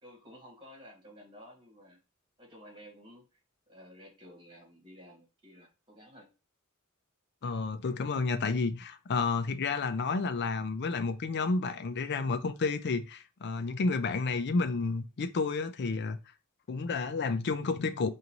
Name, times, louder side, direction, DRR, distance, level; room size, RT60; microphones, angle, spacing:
voice 1, 0.0-2.0 2.4-3.4 3.7-6.3, equal, 25° right, 1.7 m, -53 dB
voice 2, 7.4-16.2 16.7-18.1, left 4 dB, 50° left, 0.5 m, -31 dB
4.9 x 2.6 x 2.9 m
head